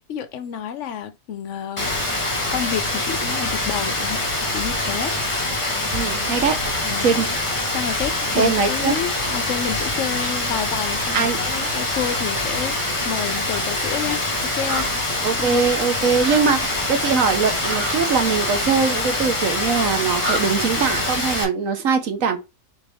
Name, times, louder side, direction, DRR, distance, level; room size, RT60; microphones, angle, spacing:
voice 1, 0.1-1.9 2.5-4.2 4.5-5.1 6.8-7.2 7.7-15.6 16.0-16.1, left 8 dB, 65° left, 0.8 m, -29 dB
Rain, 1.8-21.4, left 2 dB, 20° left, 1.1 m, -24 dB
voice 2, 5.9-6.5 7.0-7.3 8.4-8.9 11.1-11.4 15.2-22.4, right 5 dB, 60° right, 1.2 m, -21 dB
sound 1, 14.6-14.8 16.2-16.4 17.6-17.9 20.2-20.4, right 2 dB, 85° right, 2.1 m, -27 dB
4.2 x 3.3 x 3.4 m
omnidirectional pair, 1.7 m